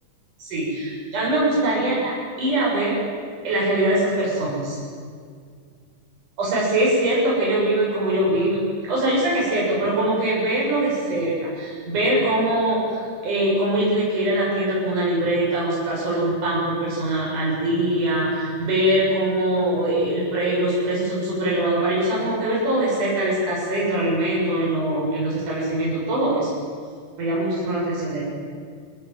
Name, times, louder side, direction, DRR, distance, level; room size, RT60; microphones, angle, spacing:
voice 1, 0.4-2.1 2.4-3.0 3.4-4.8 6.4-26.6 27.2-28.2, right 1 dB, 70° right, -5 dB, 8.1 m, -22 dB
25.0 x 18.0 x 9.1 m, 2.1 s
omnidirectional pair, 3.7 m